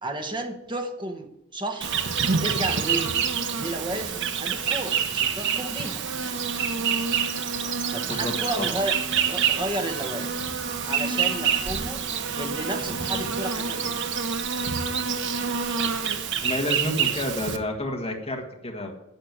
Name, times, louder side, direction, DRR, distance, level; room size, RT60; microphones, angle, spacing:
voice 1, 0.0-1.9 2.4-3.1 3.5-6.0 7.6-10.4 10.8-14.0, right 1 dB, 20° right, 4 dB, 1.4 m, -32 dB
Insect, 1.8-17.6, right 6 dB, 55° right, 1.0 m, -27 dB
voice 2, 8.0-8.7 12.9-13.4 16.4-18.9, left 1 dB, 25° left, 1 dB, 1.6 m, -30 dB
11.0 x 6.7 x 9.3 m, 0.88 s
head